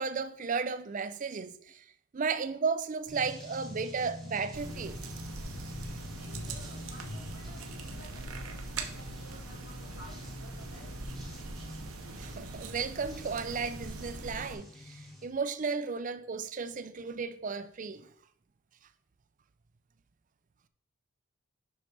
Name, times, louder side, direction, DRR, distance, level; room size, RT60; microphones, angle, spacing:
voice 1, 0.0-1.8 2.1-5.0 12.2-18.1, right 5 dB, 40° right, 0.4 m, -34 dB
Truck, 3.1-15.4, left 2 dB, 85° left, 0.9 m, -51 dB
sound 1, 3.1-15.3, left 1 dB, ahead, 1.2 m, -47 dB
sound 2, 4.5-14.5, right 3 dB, 85° right, 0.8 m, -42 dB
voice 2, 6.2-11.0, equal, 60° left, 1.8 m, -55 dB
6.9 x 5.5 x 3.3 m
head